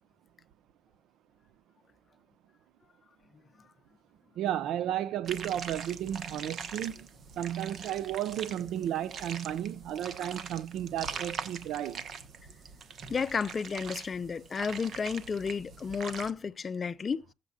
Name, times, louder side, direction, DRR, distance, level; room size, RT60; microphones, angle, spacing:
voice 1, 4.4-7.1 7.4-12.0, right 11 dB, 85° right, 0.4 m, -33 dB
sound 1, 5.3-16.3, right 6 dB, 60° right, 1.1 m, -42 dB
voice 2, 13.1-17.2, left 5 dB, 40° left, 0.5 m, -32 dB
16.0 x 7.4 x 2.5 m
cardioid pair, 90°, 0 cm